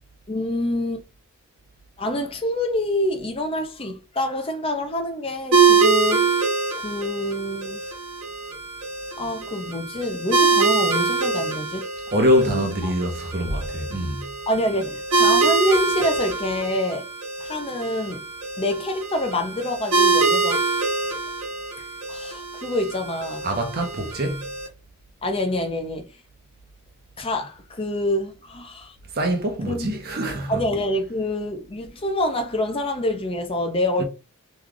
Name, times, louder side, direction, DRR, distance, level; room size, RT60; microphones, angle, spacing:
voice 1, 0.3-1.0 2.0-6.3 6.8-7.9 9.2-11.8 12.4-12.9 14.5-17.1 17.4-18.2 18.6-20.6 21.8-23.5 25.2-26.1 27.2-29.0 29.6-29.9 30.5-34.0, left 1 dB, 25° left, 0.5 m, -26 dB
sound 1, 5.5-24.7, right 4 dB, 65° right, 1.1 m, -24 dB
voice 2, 12.1-14.2 23.4-24.5 29.1-30.6 34.0-34.1, equal, 45° right, 0.8 m, -24 dB
3.1 x 2.4 x 3.6 m
head